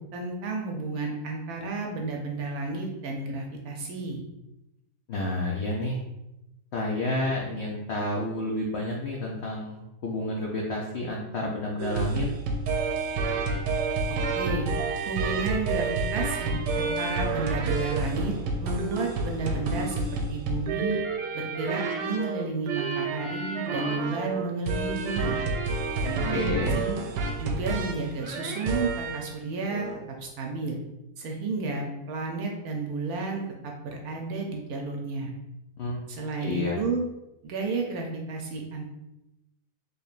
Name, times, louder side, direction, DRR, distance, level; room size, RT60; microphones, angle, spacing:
voice 1, 0.0-4.2 14.4-14.7 15.1-18.3 18.6-20.0 20.3-21.0 21.3-25.4 26.0-27.0 27.4-29.9 30.2-30.8 31.2-35.3 36.1-37.0 37.4-38.8, right 3 dB, 70° right, 1 dB, 1.0 m, -32 dB
voice 2, 5.1-6.0 6.7-12.3 26.3-26.8 35.8-36.0 36.4-36.8, left 2 dB, 75° left, -1 dB, 0.6 m, -30 dB
sound 1, 11.8-29.3 29.7-30.0, right 3 dB, 85° right, 1.2 m, -29 dB
4.5 x 3.3 x 2.5 m, 0.92 s
omnidirectional pair, 1.8 m